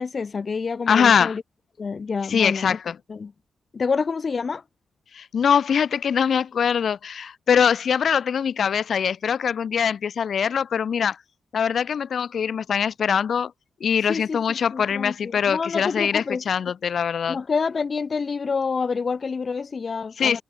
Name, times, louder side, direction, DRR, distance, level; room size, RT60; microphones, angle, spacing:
voice 1, 0.0-1.4 1.8-2.8 3.1-3.3 3.7-4.6 14.1-16.4 17.3-20.4, left 5 dB, 45° left, 4.4 m, -27 dB
voice 2, 0.9-1.4 2.3-3.0 5.1-11.2 11.5-13.5 13.8-17.4 20.2-20.4, left 7 dB, 65° left, 4.2 m, -22 dB
cardioid pair, 75°, 0 cm